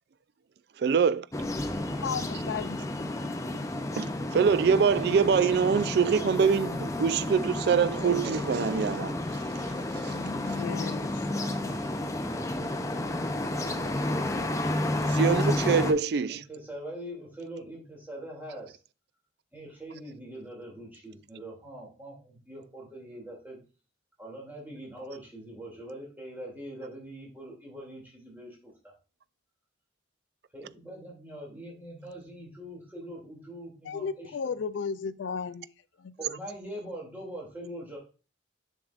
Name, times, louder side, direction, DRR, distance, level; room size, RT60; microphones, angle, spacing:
voice 1, 0.8-1.2 4.0-9.1 9.9-10.2 15.1-16.4, right 6 dB, 55° right, 0.3 m, -24 dB
sound 1, 1.3-15.9, left 1 dB, 15° left, 0.6 m, -31 dB
voice 2, 2.0-3.1 10.6-11.3 33.8-35.7 36.0-36.2, left 6 dB, 75° left, 0.4 m, -34 dB
voice 3, 7.9-9.1 10.4-10.8 11.3-13.0 13.6-14.4 14.7-15.1 16.3-18.8 19.5-23.6 24.2-28.9 30.5-34.5 36.2-38.0, right 1 dB, 10° right, 2.6 m, -43 dB
7.2 x 6.2 x 2.5 m
head